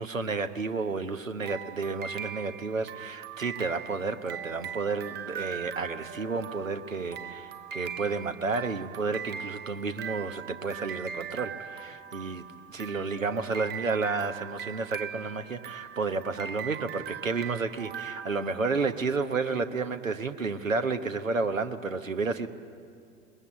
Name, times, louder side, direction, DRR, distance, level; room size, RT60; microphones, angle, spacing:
voice 1, 0.0-12.5 12.7-22.5, right 4 dB, 85° right, 9 dB, 1.1 m, -31 dB
Music Box Clockwork - Lullaby, 1.4-19.1, right 8 dB, 25° right, 0.7 m, -40 dB
21.5 x 21.5 x 8.6 m, 2.3 s
figure-of-eight pair, 80°, 38 cm